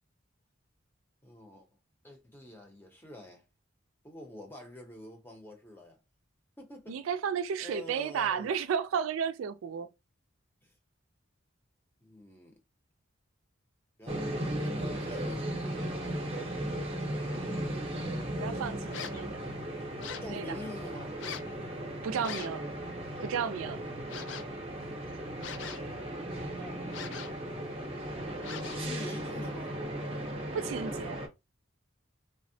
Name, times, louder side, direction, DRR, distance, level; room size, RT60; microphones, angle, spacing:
voice 1, 1.2-1.7 2.0-3.4 4.0-6.0 6.6-7.1 7.6-8.5 10.6-10.7 12.0-12.6 14.0-16.4 20.2-21.2 22.2-22.4 26.3-27.2 28.8-29.8, left 1 dB, 10° left, 0.6 m, -47 dB
voice 2, 6.9-9.9 18.4-19.4 20.3-20.4 22.0-22.6 23.2-23.8 30.5-31.2, right 7 dB, 80° right, 0.3 m, -33 dB
sound 1, 14.1-31.3, right 1 dB, 30° right, 0.6 m, -36 dB
sound 2, 18.9-19.3 20.0-20.4 21.2-21.5 22.2-22.6 24.1-24.6 25.4-26.0 26.9-27.5 28.4-29.0, left 7 dB, 60° left, 0.3 m, -42 dB
3.4 x 2.0 x 2.6 m
head